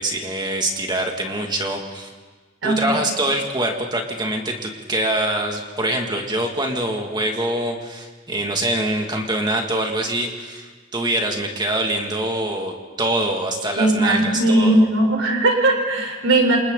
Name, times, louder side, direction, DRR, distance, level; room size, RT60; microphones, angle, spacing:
voice 1, 0.0-2.1 2.6-14.8, right 1 dB, 25° right, 2 dB, 2.6 m, -24 dB
voice 2, 2.6-3.1 13.8-16.6, right 1 dB, 90° right, 2 dB, 4.7 m, -18 dB
28.5 x 27.5 x 4.2 m, 1.4 s
head